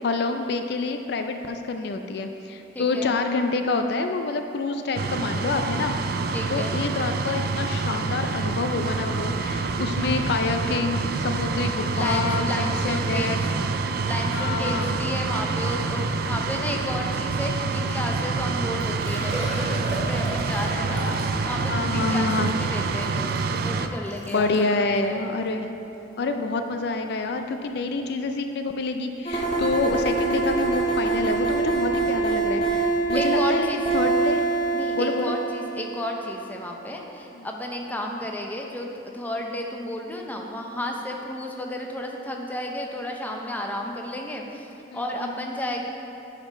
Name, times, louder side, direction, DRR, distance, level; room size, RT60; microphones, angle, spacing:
voice 1, 0.0-5.9 6.5-13.4 14.3-15.0 21.0-21.3 21.7-22.5 24.3-25.7 26.2-34.4 35.0-35.3 37.4-37.5 44.9-45.3, left 3 dB, 55° left, 6 dB, 0.4 m, -27 dB
voice 2, 2.7-3.1 6.3-6.8 10.0-10.2 11.9-13.4 14.0-25.4 33.2-33.8 34.7-38.9 39.1-45.8, left 1 dB, 10° left, 1 dB, 0.6 m, -32 dB
sound 1, 5.0-23.9, right 4 dB, 50° right, 0.4 m, -27 dB
Liquid, 18.8-24.7 25.4-25.5 25.9-26.0 27.7-27.8 27.9-28.0, right 1 dB, 30° right, 2.0 m, -36 dB
sound 2, 29.3-36.1, right 3 dB, 35° left, 1.4 m, -24 dB
8.6 x 5.0 x 5.5 m, 2.9 s
head